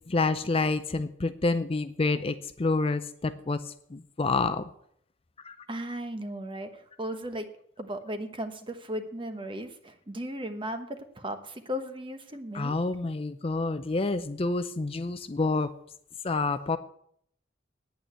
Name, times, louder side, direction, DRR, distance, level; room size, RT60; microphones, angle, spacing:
voice 1, 0.1-4.6 5.4-5.6 12.5-15.7 16.2-16.8, left 3 dB, 30° left, 11 dB, 0.5 m, -28 dB
voice 2, 5.7-6.7 7.0-7.5 7.8-12.8, equal, 25° right, 8 dB, 1.2 m, -36 dB
9.4 x 8.9 x 8.1 m, 0.67 s
head